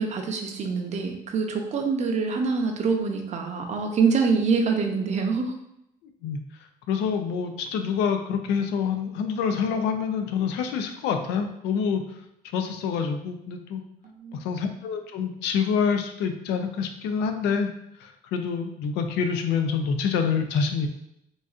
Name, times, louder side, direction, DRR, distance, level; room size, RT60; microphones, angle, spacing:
voice 1, 0.0-5.5 14.2-14.4, right 5 dB, 45° right, 3 dB, 0.5 m, -25 dB
voice 2, 6.9-12.0 12.5-13.8 14.4-17.7 18.0-20.9, left 6 dB, 85° left, 6 dB, 0.4 m, -26 dB
3.9 x 2.4 x 2.4 m, 0.80 s
cardioid pair, 110°, 17 cm